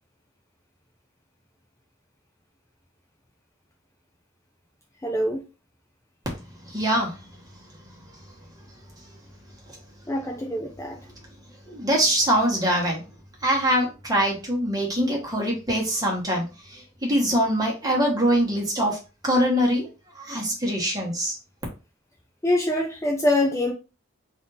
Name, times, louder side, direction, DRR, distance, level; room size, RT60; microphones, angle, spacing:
voice 1, 5.0-5.4 10.1-11.0 22.4-23.7, left 1 dB, 15° left, 0.5 m, -24 dB
voice 2, 6.7-7.2 11.7-13.0 13.4-19.0 19.2-19.9 20.1-21.3, equal, 20° right, 1.4 m, -23 dB
3.5 x 2.7 x 4.0 m
head